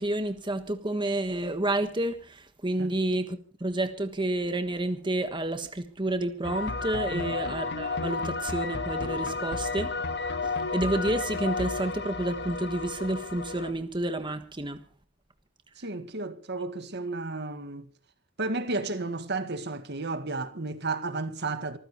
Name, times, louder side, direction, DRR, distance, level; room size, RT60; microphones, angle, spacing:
voice 1, 0.0-9.9 10.4-14.8, right 1 dB, 25° right, 1.4 m, -30 dB
sound 1, 6.4-13.7, left 3 dB, 60° left, 1.7 m, -32 dB
voice 2, 15.8-17.9 18.4-21.8, right 3 dB, 55° right, 1.7 m, -33 dB
25.5 x 15.0 x 3.1 m
head